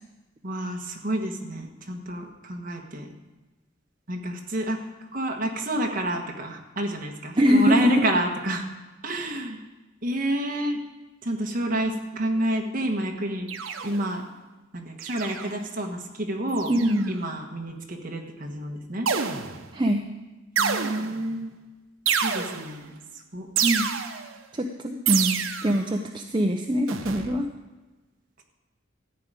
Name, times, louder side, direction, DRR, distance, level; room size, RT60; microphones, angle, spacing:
voice 1, 0.4-3.1 4.1-4.8 5.1-8.6 9.0-9.6 10.0-10.8 11.2-13.5 13.8-14.3 14.7-16.7 17.1-19.1 20.6-21.5 22.2-22.9 23.3-23.5, right 1 dB, 45° right, 2 dB, 1.5 m, -29 dB
voice 2, 7.4-8.1 16.7-17.1 19.7-20.0 23.6-23.9 24.5-27.5, equal, 25° right, 3 dB, 0.6 m, -23 dB
sound 1, 13.5-14.2 15.0-15.6 16.5-17.1 19.1-19.8 20.6-21.3 22.1-22.8 23.6-24.4 25.1-25.9 26.9-27.3, right 7 dB, 85° right, 0.8 m, -28 dB
14.0 x 4.9 x 9.1 m, 1.2 s
head